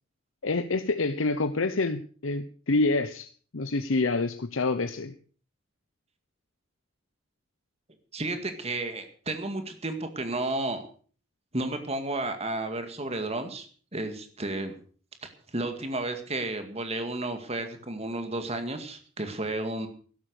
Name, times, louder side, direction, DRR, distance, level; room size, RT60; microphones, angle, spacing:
voice 1, 0.4-5.1, left 3 dB, 80° left, 9 dB, 0.9 m, -27 dB
voice 2, 8.1-10.8 11.5-13.7 13.9-14.7 15.2-19.9, right 2 dB, 30° right, 7 dB, 2.0 m, -32 dB
13.0 x 11.5 x 6.5 m, 0.43 s
head